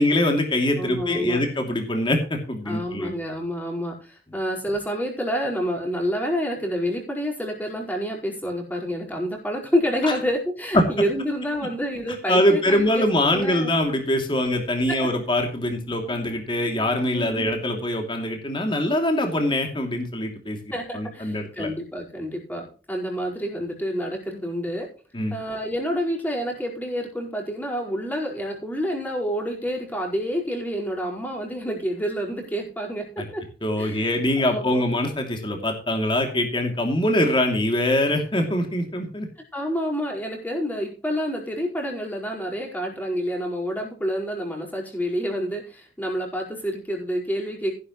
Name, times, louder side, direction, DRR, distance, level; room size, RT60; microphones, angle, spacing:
voice 1, 0.0-3.1 10.0-10.1 10.7-10.8 12.3-21.7 25.1-25.4 33.6-39.3, left 1 dB, 25° left, 4 dB, 2.8 m, -23 dB
voice 2, 0.7-1.5 2.7-13.7 14.9-15.1 17.1-17.5 20.7-24.9 25.3-33.4 33.8-34.9 39.5-47.7, equal, 10° left, 0 dB, 4.9 m, -28 dB
15.5 x 11.5 x 3.1 m, 0.36 s
head